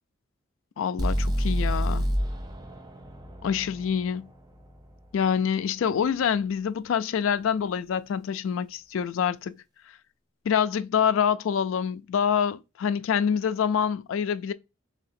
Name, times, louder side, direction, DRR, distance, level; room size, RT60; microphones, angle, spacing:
voice 1, 0.8-2.1 3.4-4.3 5.1-9.6 10.5-14.5, left 7 dB, 75° left, 0.3 m, -26 dB
sound 1, 1.0-4.9, equal, 20° right, 0.5 m, -28 dB
3.3 x 2.8 x 4.2 m
head